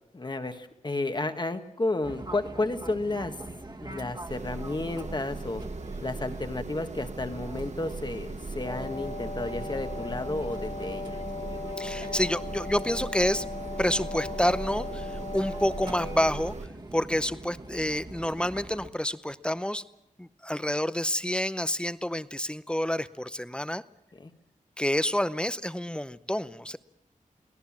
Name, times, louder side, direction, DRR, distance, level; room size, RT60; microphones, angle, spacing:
voice 1, 0.1-3.3 3.8-5.6 6.0-11.2 24.2-24.3, left 2 dB, 30° left, 8 dB, 1.5 m, -32 dB
Fixed-wing aircraft airplane, 2.0-18.9, right 2 dB, 30° right, 1.9 m, -43 dB
sound 1, 4.3-16.7, right 3 dB, 55° right, 1.0 m, -39 dB
Wind instrument woodwind instrument, 8.5-16.5, left 4 dB, 55° left, 3.6 m, -38 dB
voice 2, 11.8-13.5 13.8-19.8 20.2-23.8 24.8-26.8, left 1 dB, 5° left, 14 dB, 0.7 m, -28 dB
23.5 x 17.5 x 7.4 m, 0.83 s
wide cardioid pair, 110°, 14 cm